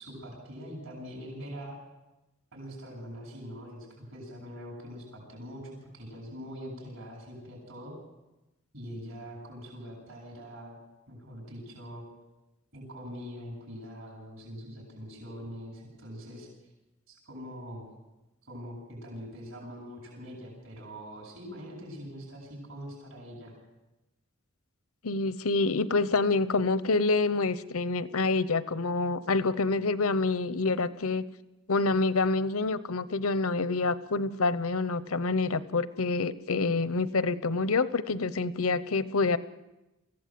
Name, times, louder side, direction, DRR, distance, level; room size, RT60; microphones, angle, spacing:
voice 1, 0.0-1.8 2.5-7.9 8.7-10.8 11.1-12.0 12.7-16.5 17.1-17.9 18.5-23.6, equal, 65° right, -2 dB, 7.7 m, -43 dB
voice 2, 25.0-31.2 31.7-39.4, left 3 dB, 85° left, 15 dB, 0.9 m, -27 dB
24.0 x 16.0 x 7.7 m, 0.98 s
head